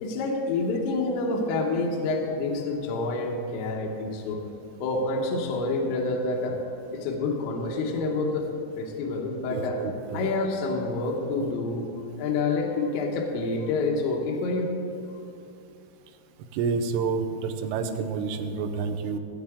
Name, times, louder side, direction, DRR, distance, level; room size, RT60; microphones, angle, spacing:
voice 1, 0.0-4.4 4.8-6.6 6.9-8.5 8.8-9.8 10.1-11.9 12.2-14.7, left 3 dB, 75° left, 0 dB, 3.1 m, -28 dB
voice 2, 9.5-10.3 16.5-19.2, right 5 dB, 85° right, 5 dB, 3.2 m, -29 dB
17.5 x 8.6 x 3.6 m, 2.8 s
omnidirectional pair, 5.7 m